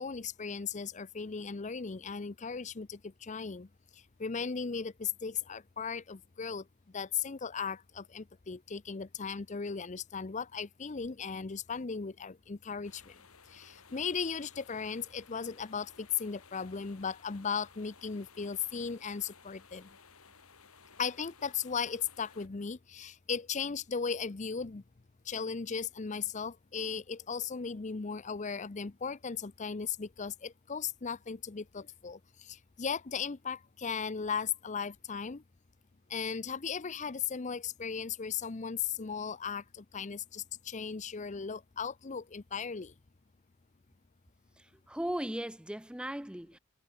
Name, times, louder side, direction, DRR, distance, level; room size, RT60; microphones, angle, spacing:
voice 1, 0.0-3.7 3.9-6.7 6.9-13.2 13.5-19.9 21.0-24.8 25.2-35.4 36.1-42.9, left 6 dB, 35° left, 0.6 m, -37 dB
sound 1, 12.8-22.5, left 5 dB, 85° left, 6.2 m, -58 dB
voice 2, 44.9-46.6, right 1 dB, 5° right, 0.7 m, -37 dB
head